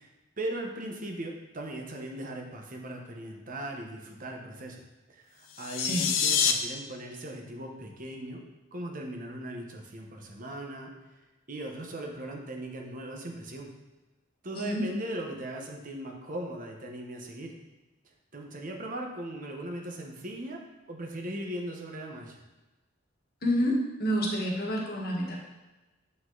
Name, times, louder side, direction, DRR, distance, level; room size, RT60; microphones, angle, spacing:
voice 1, 0.0-4.8 5.1-8.4 8.7-10.9 11.5-13.7 14.4-17.5 18.3-20.6 20.9-22.4, right 1 dB, 45° right, 2 dB, 1.0 m, -38 dB
sound 1, 5.5-6.5, left 7 dB, 75° left, 0.7 m, -26 dB
voice 2, 14.5-14.9 23.4-25.4, equal, 50° left, -1 dB, 1.5 m, -28 dB
7.8 x 5.7 x 3.9 m, 1.1 s
head